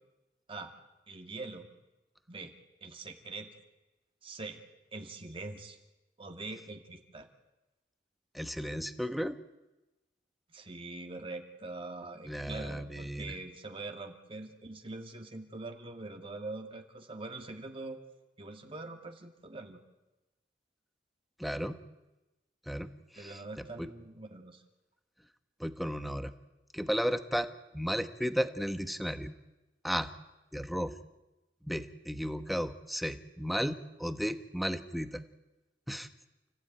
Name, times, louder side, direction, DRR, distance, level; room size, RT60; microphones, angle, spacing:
voice 1, 1.1-1.7 2.3-2.5 2.8-3.5 4.2-4.6 4.9-5.8 6.2-7.3 10.5-18.0 18.4-19.8 23.2-24.6, right 2 dB, 30° right, 5 dB, 2.1 m, -43 dB
voice 2, 8.3-9.4 12.2-13.4 21.4-21.8 22.7-23.9 25.6-26.3 26.7-27.5 27.7-29.3 29.8-30.1 30.5-30.9 31.6-35.2 35.9-36.1, equal, ahead, 9 dB, 1.1 m, -34 dB
29.5 x 16.0 x 9.2 m, 1.0 s
head